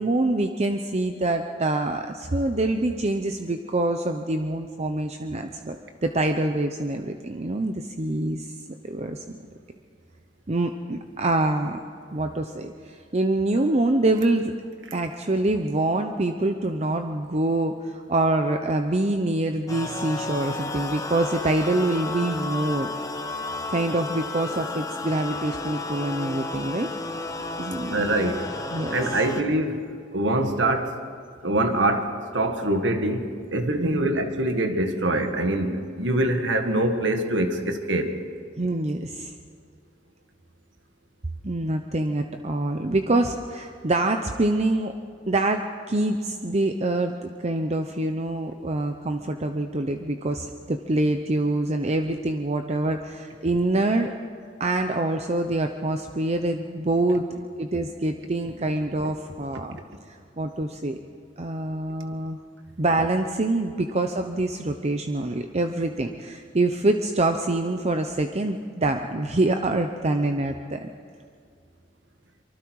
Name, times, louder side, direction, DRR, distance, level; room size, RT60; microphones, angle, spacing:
voice 1, 0.0-5.8 6.0-8.5 8.8-9.2 10.5-11.8 12.1-14.5 14.9-22.9 23.7-26.9 27.6-27.9 28.7-29.0 33.7-34.1 38.6-39.3 41.4-44.9 45.3-54.1 54.6-57.2 57.6-59.8 60.1-61.0 61.4-62.4 62.8-70.9, right 2 dB, 35° right, 6 dB, 0.7 m, -25 dB
sound 1, 19.7-29.4, left 3 dB, 20° left, 1.1 m, -32 dB
voice 2, 27.9-28.5 28.9-29.8 30.1-31.0 31.4-38.1 59.7-59.8, right 1 dB, 75° right, 6 dB, 1.8 m, -24 dB
24.5 x 24.0 x 4.8 m, 2.2 s
head